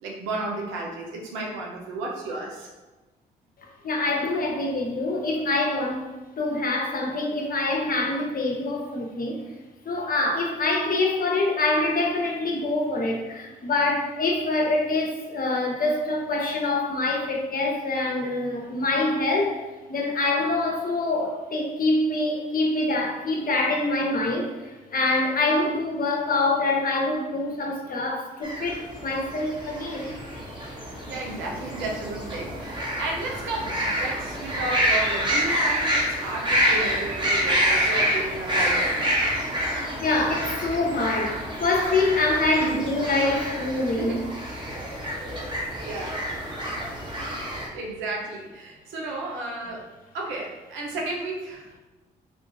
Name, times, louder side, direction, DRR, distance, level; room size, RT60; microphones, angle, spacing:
voice 1, 0.0-2.7 30.3-30.4 31.1-39.1 42.6-42.8 44.0-44.2 45.8-46.3 47.5-49.9 50.1-51.7, right 2 dB, 80° right, -1 dB, 0.7 m, -33 dB
voice 2, 3.8-6.1 6.4-9.5 9.8-19.6 19.9-24.5 24.9-30.1 40.0-44.2, left 2 dB, 50° left, 0 dB, 0.9 m, -25 dB
sound 1, 28.4-47.7, equal, 25° right, 1.2 m, -27 dB
3.5 x 2.7 x 2.7 m, 1.2 s
hypercardioid pair, 45°, 19 cm